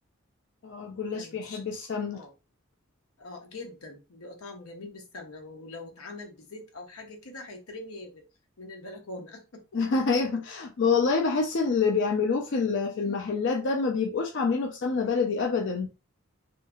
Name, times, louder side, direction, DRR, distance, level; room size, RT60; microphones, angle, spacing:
voice 1, 0.6-2.2 9.7-15.9, left 4 dB, 55° left, 0.4 m, -27 dB
voice 2, 1.1-1.6 2.1-2.3 3.2-8.2 8.6-9.6 12.9-13.2 15.0-15.3, left 2 dB, 90° left, 0.8 m, -43 dB
2.7 x 2.5 x 2.3 m
head